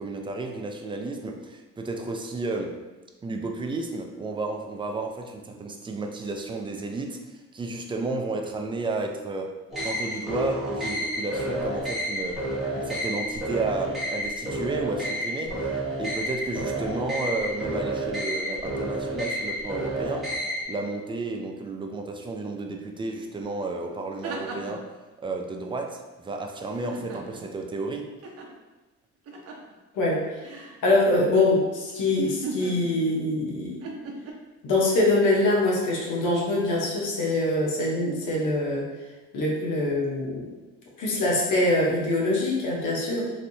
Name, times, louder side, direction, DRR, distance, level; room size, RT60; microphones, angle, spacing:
voice 1, 0.0-2.8 3.2-9.5 9.8-12.5 12.7-15.7 16.0-20.4 20.7-24.9 25.2-28.1, right 3 dB, 15° right, 3 dB, 0.4 m, -32 dB
sound 1, 9.7-20.6, right 1 dB, ahead, 1.2 m, -30 dB
sound 2, 23.4-23.5 23.9-24.9 26.7-27.6 28.2-28.5 29.3-29.7 30.4-30.8 32.2-33.2 33.8-34.3, right 3 dB, 50° right, 0.6 m, -37 dB
voice 2, 29.9-30.3 30.8-33.8 34.6-38.9 39.3-40.4 41.0-43.3, left 2 dB, 85° left, -3 dB, 0.9 m, -24 dB
3.2 x 2.6 x 2.6 m, 1.1 s
cardioid pair, 90°, 30 cm